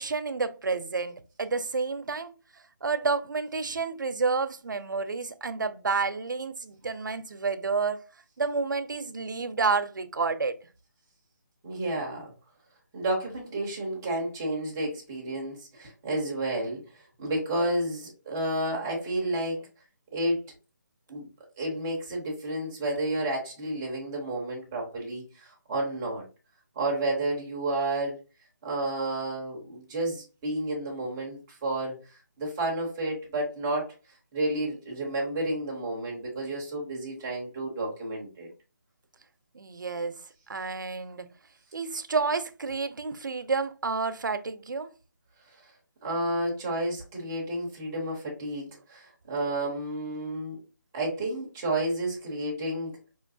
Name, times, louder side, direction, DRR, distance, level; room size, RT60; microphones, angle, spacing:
voice 1, 0.0-2.3 2.8-8.0 8.4-10.6 39.5-40.2 40.5-41.3 41.7-44.9, right 4 dB, 80° right, 0.6 m, -30 dB
voice 2, 11.6-12.3 12.9-19.7 20.1-20.4 21.1-21.3 21.6-26.2 26.8-28.2 28.6-33.9 34.3-38.5 46.0-50.6 50.9-53.0, right 1 dB, 10° right, 0.7 m, -31 dB
5.0 x 3.1 x 2.6 m
hypercardioid pair, 175°, 10 cm